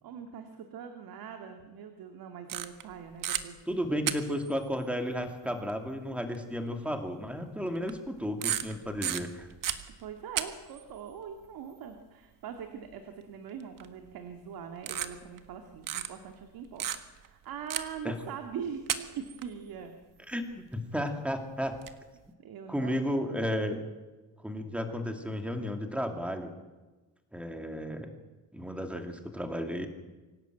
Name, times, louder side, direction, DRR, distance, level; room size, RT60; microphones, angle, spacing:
voice 1, 0.0-3.6 10.0-20.0 22.4-23.6, right 7 dB, 85° right, 5 dB, 2.4 m, -42 dB
sound 1, 2.5-2.9 3.2-3.4 4.1-4.5 5.7-5.8 6.3-6.4 7.8-8.1 8.4-10.4 10.7-10.8 13.8-14.1 14.8-15.5 15.9-16.1 16.8-17.3 17.7-18.0 18.7-19.5 21.1-21.2 21.6-21.9, right 10 dB, 65° right, 1.7 m, -33 dB
voice 2, 3.7-9.5 18.0-18.1 20.3-21.8 22.7-23.8 24.4-26.5 27.3-28.1 28.5-29.9, equal, 5° right, 5 dB, 2.4 m, -33 dB
25.0 x 17.0 x 9.1 m, 1.2 s
cardioid pair, 175°, 35 cm